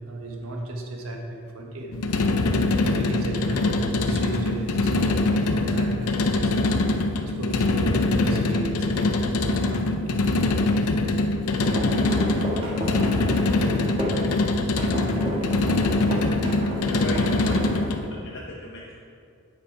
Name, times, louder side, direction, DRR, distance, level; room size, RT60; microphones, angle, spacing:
voice 1, 0.0-1.9 2.3-10.2 11.3-11.5, right 2 dB, 75° right, 0 dB, 1.3 m, -35 dB
sound 1, 1.9-18.1, left 2 dB, 85° left, 0.6 m, -23 dB
sound 2, 11.5-14.3 14.8-17.9, equal, 25° right, 1.5 m, -30 dB
voice 2, 16.9-19.0, left 1 dB, 55° left, -3 dB, 0.8 m, -37 dB
9.0 x 6.1 x 4.8 m, 2.4 s
head